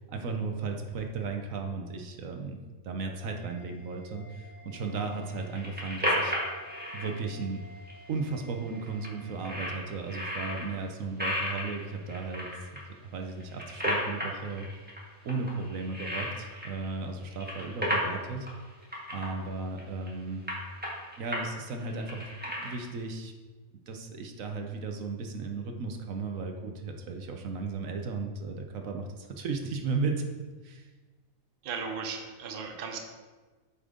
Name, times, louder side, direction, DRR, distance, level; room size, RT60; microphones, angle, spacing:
voice 1, 0.1-2.6 2.8-6.3 6.9-7.6 8.1-12.7 13.1-14.7 15.2-18.5 19.1-20.4 21.2-22.2 22.6-23.3 23.9-30.2 30.6-30.9, right 4 dB, 70° right, 3 dB, 1.2 m, -35 dB
sound 1, 3.2-9.7, equal, 80° left, 1.3 m, -53 dB
sound 2, 5.3-7.1 7.9-8.0 8.2-8.3 8.7-9.1 9.4-10.7 11.2-12.8 13.3-15.0 15.3-16.9 17.2-18.2 18.5-18.6 18.8-19.3 19.8-20.1 20.5-21.5 21.8-23.0, equal, 5° right, 1.6 m, -33 dB
voice 2, 31.6-33.0, right 5 dB, 50° right, 4 dB, 0.8 m, -36 dB
8.2 x 5.1 x 3.8 m, 1.3 s
omnidirectional pair, 1.5 m